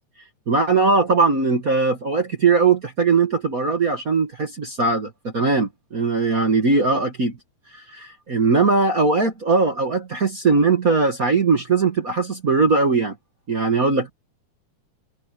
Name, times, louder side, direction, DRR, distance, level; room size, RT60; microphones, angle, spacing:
voice 1, 0.5-7.4 7.7-13.1 13.5-14.1, right 4 dB, 45° right, 1.2 m, -20 dB
omnidirectional pair, 3.7 m